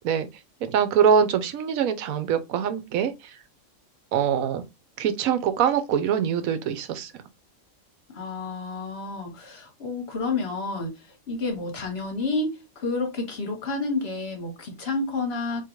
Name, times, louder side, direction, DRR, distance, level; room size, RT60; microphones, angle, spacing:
voice 1, 0.6-3.1 4.1-4.6 5.0-7.1, right 8 dB, 80° right, 1.0 m, -23 dB
voice 2, 8.1-10.9 11.3-15.6, left 3 dB, 50° left, 1.2 m, -30 dB
3.7 x 2.8 x 2.9 m
omnidirectional pair, 1.4 m